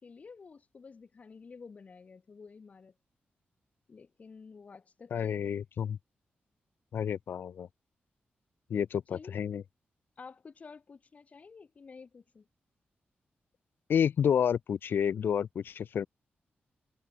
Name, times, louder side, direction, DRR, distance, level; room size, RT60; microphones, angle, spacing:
voice 1, 0.0-2.9 3.9-5.6 9.1-9.4 10.2-12.5, left 5 dB, 40° left, 3.6 m, -51 dB
voice 2, 5.1-6.0 6.9-7.7 8.7-9.6 13.9-16.1, left 8 dB, 65° left, 0.4 m, -29 dB
wide cardioid pair, 160°, 4 cm